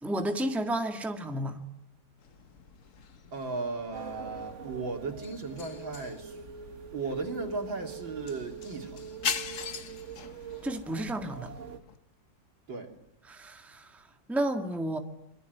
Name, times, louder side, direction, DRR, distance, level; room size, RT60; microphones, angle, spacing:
voice 1, 0.0-1.6 10.6-11.5 13.3-14.0 14.3-15.0, right 1 dB, ahead, 5 dB, 1.8 m, -31 dB
sound 1, 2.2-12.0, left 6 dB, 45° left, 1.4 m, -42 dB
voice 2, 3.3-6.4 6.9-9.1 12.7-12.9, right 3 dB, 75° right, 3 dB, 3.9 m, -36 dB
sound 2, 3.9-11.8, right 5 dB, 40° right, 1.8 m, -43 dB
26.0 x 23.5 x 9.4 m, 0.85 s
omnidirectional pair, 2.1 m